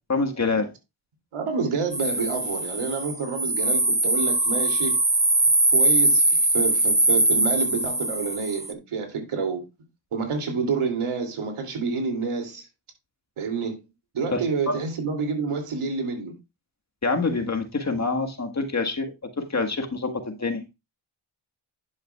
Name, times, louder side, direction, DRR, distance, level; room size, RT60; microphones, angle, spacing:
voice 1, 0.1-0.7 14.3-14.8 17.0-20.6, left 3 dB, 35° left, 1.7 m, -26 dB
voice 2, 1.3-5.0 5.7-9.6 10.1-12.7 13.4-13.8 14.1-16.3, right 5 dB, 80° right, 2.9 m, -28 dB
sound 1, 1.9-8.7, right 2 dB, 15° right, 0.8 m, -22 dB
11.0 x 6.5 x 2.4 m
cardioid pair, 50°, 50 cm